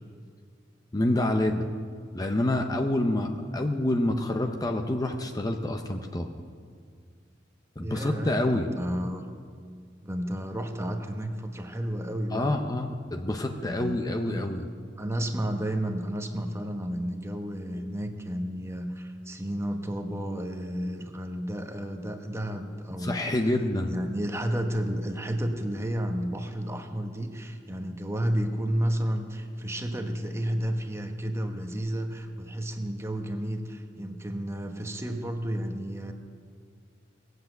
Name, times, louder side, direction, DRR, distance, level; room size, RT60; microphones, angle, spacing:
voice 1, 0.9-1.7 2.1-6.3 7.8-8.7 12.3-14.7 23.0-23.9, left 1 dB, 20° left, 4 dB, 0.7 m, -27 dB
voice 2, 7.8-9.2 10.0-12.5 13.6-14.5 15.0-23.2 23.8-36.1, equal, 15° right, 5 dB, 1.1 m, -32 dB
19.5 x 8.1 x 7.8 m, 2.1 s
head